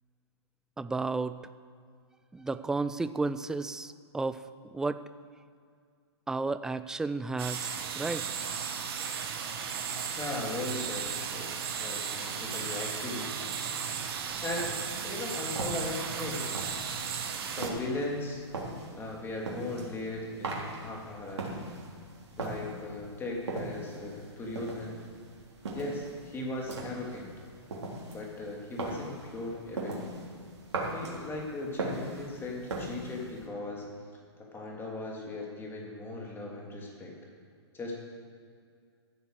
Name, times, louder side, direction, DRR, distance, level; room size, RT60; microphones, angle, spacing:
voice 1, 0.8-1.4 2.3-4.4 4.7-5.1 6.3-8.3, right 3 dB, 5° right, 13 dB, 0.3 m, -32 dB
sound 1, 7.4-17.7, right 7 dB, 60° right, 1.8 m, -35 dB
voice 2, 10.2-13.3 14.4-16.5 17.6-18.4 19.0-21.4 22.4-25.0 25.7-27.3 28.1-30.0 30.9-33.9 34.5-37.1 37.7-37.9, left 2 dB, 15° left, -1 dB, 2.9 m, -38 dB
sound 2, 13.9-33.5, right 2 dB, 75° right, 3.5 m, -40 dB
13.5 x 8.0 x 6.6 m, 2.2 s
hypercardioid pair, 125°, 14 cm